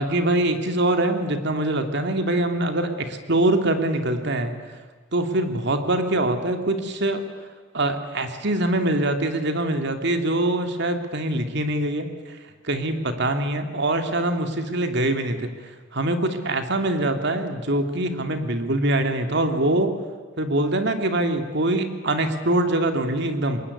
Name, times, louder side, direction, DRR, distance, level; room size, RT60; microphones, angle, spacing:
voice 1, 0.0-4.5 5.1-7.2 7.7-12.1 12.6-15.5 15.9-19.9 20.4-23.6, right 1 dB, 60° right, 7 dB, 2.5 m, -23 dB
25.0 x 21.0 x 9.7 m, 1.4 s
head